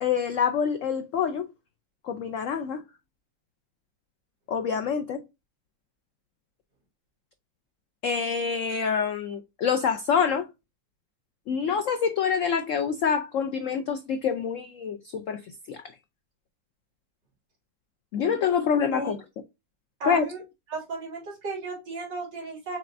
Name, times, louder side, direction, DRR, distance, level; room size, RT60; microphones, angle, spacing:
voice 1, 0.0-1.5 2.0-2.8 4.5-5.2 8.0-10.5 11.5-15.8 18.1-19.2 20.1-20.3, left 6 dB, 90° left, 0.6 m, -26 dB
voice 2, 20.0-20.4 20.7-22.8, right 3 dB, 70° right, 3.1 m, -34 dB
6.6 x 3.1 x 2.5 m
omnidirectional pair, 2.0 m